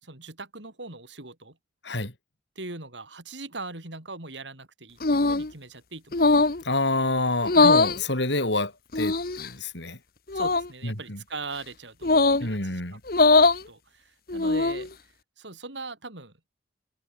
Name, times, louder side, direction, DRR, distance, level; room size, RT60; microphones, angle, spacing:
voice 1, 0.0-1.6 2.5-6.4 7.5-7.8 10.3-14.9 15.4-16.3, right 3 dB, 85° right, 4.9 m, -40 dB
sound 1, 5.0-5.5 6.1-6.6 7.4-8.0 8.9-9.5 10.3-10.7 12.0-12.5 13.1-13.6 14.3-14.9, left 3 dB, 55° left, 1.1 m, -20 dB
voice 2, 6.6-10.0 10.8-11.2 12.4-13.0, left 2 dB, 80° left, 6.1 m, -28 dB
head